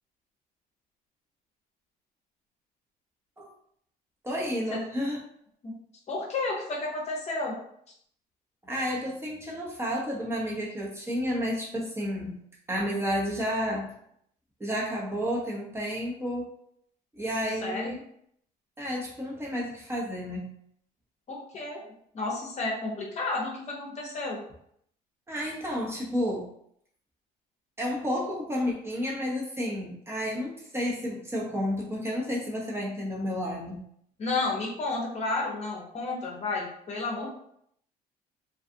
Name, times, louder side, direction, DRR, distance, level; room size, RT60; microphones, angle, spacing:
voice 1, 4.2-5.2 8.6-12.4 12.7-13.9 14.6-16.5 17.1-18.0 18.8-20.5 25.3-26.5 27.8-33.8, equal, 15° right, -3 dB, 0.7 m, -31 dB
voice 2, 6.1-7.6 17.6-17.9 21.3-21.8 22.1-24.4 34.2-37.3, left 3 dB, 40° left, -1 dB, 0.7 m, -31 dB
2.5 x 2.3 x 2.6 m, 0.70 s
cardioid pair, 110°, 17 cm